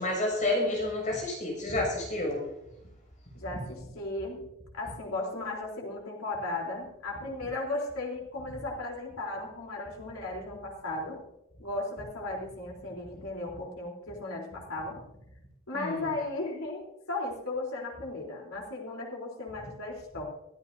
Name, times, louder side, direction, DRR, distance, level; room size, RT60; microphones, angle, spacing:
voice 1, 0.0-2.4 15.7-16.1, left 2 dB, 40° left, 0 dB, 6.5 m, -30 dB
voice 2, 3.3-4.4 4.7-11.2 11.6-15.0 15.7-16.8 17.1-20.2, left 2 dB, 90° left, -2 dB, 3.5 m, -36 dB
23.5 x 13.5 x 2.7 m, 0.85 s
head